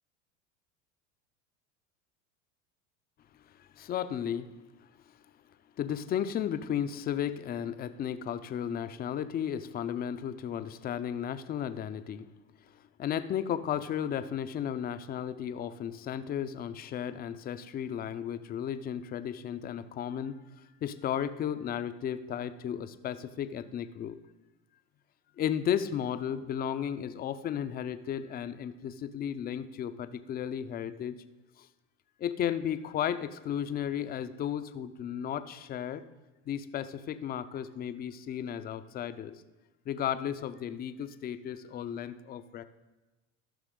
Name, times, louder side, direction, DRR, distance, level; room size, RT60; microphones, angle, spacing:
voice 1, 3.8-4.5 5.8-12.3 13.0-20.3 20.8-24.2 25.4-31.1 32.2-36.0 36.5-39.3 39.9-42.6, left 9 dB, 25° left, 11 dB, 0.5 m, -34 dB
13.5 x 6.0 x 3.7 m, 1.1 s
hypercardioid pair, 100°, 38 cm